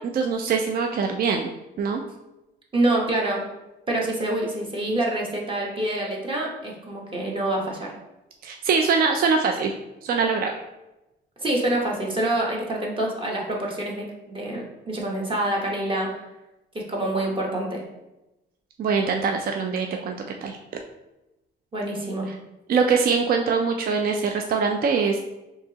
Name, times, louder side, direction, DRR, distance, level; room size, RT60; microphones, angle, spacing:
voice 1, 0.0-1.5 1.8-2.0 8.4-9.7 10.0-10.6 18.8-20.2 20.4-20.6 22.7-25.2, right 5 dB, 50° right, 3 dB, 0.4 m, -23 dB
voice 2, 2.7-3.4 3.9-7.9 11.4-16.1 16.7-17.8 21.7-22.3, right 1 dB, 25° right, -2 dB, 1.0 m, -26 dB
4.5 x 2.8 x 2.9 m, 0.97 s
cardioid pair, 90°, 20 cm